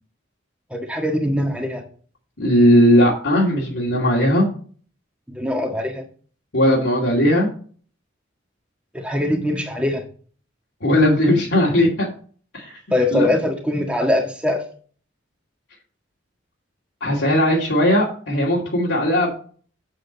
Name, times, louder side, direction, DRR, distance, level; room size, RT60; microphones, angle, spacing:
voice 1, 0.7-1.8 5.3-6.0 8.9-10.0 12.9-14.6, left 1 dB, 5° right, 2 dB, 1.6 m, -22 dB
voice 2, 2.4-4.5 6.5-7.5 10.8-12.1 12.5-12.7 13.1-13.3 17.0-19.3, equal, 70° left, -4 dB, 2.4 m, -17 dB
7.8 x 7.7 x 4.0 m, 0.42 s
head